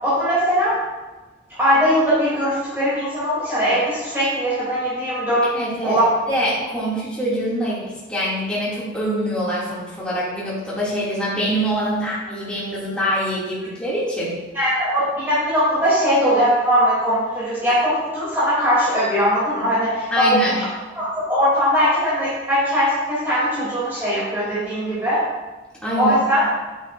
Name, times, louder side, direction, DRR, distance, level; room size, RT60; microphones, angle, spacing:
voice 1, 0.0-0.8 1.6-5.4 5.8-6.1 14.5-20.7 20.9-25.2 25.9-26.4, equal, 10° right, -12 dB, 2.9 m, -20 dB
voice 2, 5.4-6.0 6.3-14.3 20.1-20.6 25.8-26.2, equal, 5° left, -9 dB, 2.5 m, -24 dB
9.1 x 9.0 x 2.6 m, 1.2 s
head